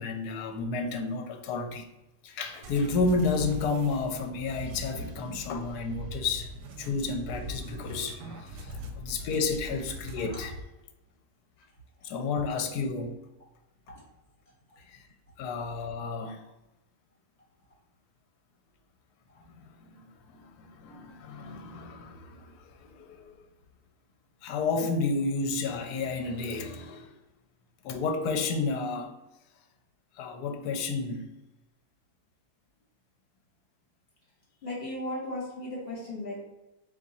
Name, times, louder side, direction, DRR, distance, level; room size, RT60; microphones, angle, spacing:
voice 1, 0.0-1.9 2.2-10.6 12.0-13.1 14.8-15.0 15.4-16.4 19.5-23.4 24.4-27.1 27.8-29.1 30.2-31.3, left 4 dB, 80° left, 5 dB, 1.1 m, -31 dB
sound 1, 2.6-10.6, right 1 dB, 80° right, 1.1 m, -41 dB
voice 2, 34.6-36.4, left 1 dB, 40° left, -4 dB, 1.7 m, -36 dB
3.6 x 2.8 x 4.1 m, 0.97 s
omnidirectional pair, 1.7 m